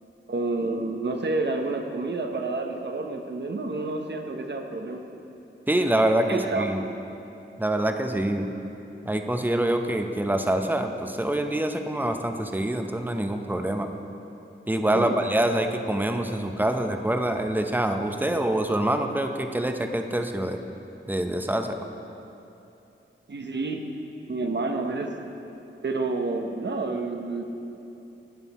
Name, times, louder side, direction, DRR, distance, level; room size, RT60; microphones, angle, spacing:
voice 1, 0.3-5.0 6.3-6.8 14.9-15.2 23.3-23.8 24.3-25.1 25.8-27.4, right 3 dB, 55° right, 4 dB, 0.9 m, -29 dB
voice 2, 5.7-6.8 7.6-8.5 9.0-13.9 14.7-20.6 21.1-21.8, right 1 dB, 10° right, 5 dB, 0.7 m, -25 dB
13.0 x 8.9 x 4.2 m, 2.9 s
wide cardioid pair, 85°, 21 cm